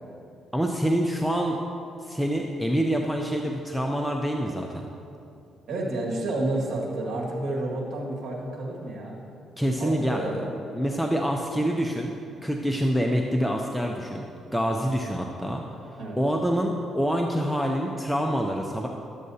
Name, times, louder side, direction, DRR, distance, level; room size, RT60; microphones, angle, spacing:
voice 1, 0.5-1.6 2.0-4.8 9.6-10.4 10.7-12.1 12.4-14.2 14.5-15.6 16.2-18.9, equal, ahead, 1 dB, 0.5 m, -26 dB
voice 2, 5.7-9.2 9.8-10.5 16.0-16.2, right 2 dB, 60° right, -2 dB, 1.8 m, -30 dB
12.0 x 7.4 x 2.7 m, 2.7 s
cardioid pair, 90°, 0 cm